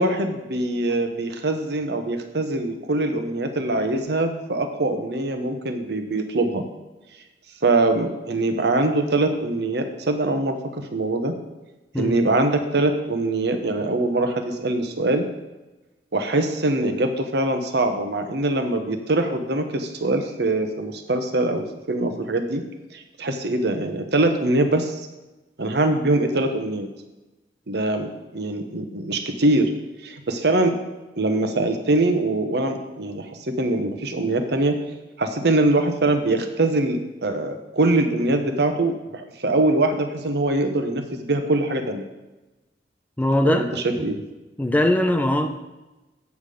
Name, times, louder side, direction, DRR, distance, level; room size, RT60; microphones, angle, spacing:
voice 1, 0.0-6.7 7.6-11.3 12.0-15.3 16.1-22.6 22.9-25.1 25.6-26.9 27.7-29.7 30.0-30.7 31.2-34.8 35.2-42.0 43.4-44.2, right 2 dB, 70° right, 6 dB, 1.0 m, -23 dB
voice 2, 43.2-44.0 44.6-45.5, left 1 dB, 10° left, 6 dB, 0.6 m, -21 dB
8.2 x 7.4 x 5.0 m, 1.1 s
head